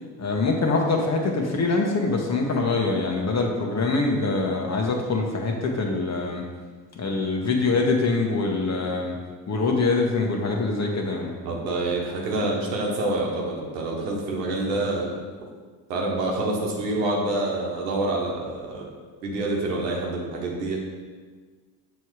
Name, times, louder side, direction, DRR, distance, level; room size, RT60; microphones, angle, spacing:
voice 1, 0.2-6.4 6.9-9.2 9.5-11.3, left 3 dB, 30° left, 1 dB, 1.2 m, -24 dB
voice 2, 11.4-15.2 15.9-18.9 19.2-20.8, right 2 dB, 80° right, -2 dB, 1.3 m, -27 dB
6.8 x 3.2 x 4.7 m, 1.5 s
hypercardioid pair, 60°, 49 cm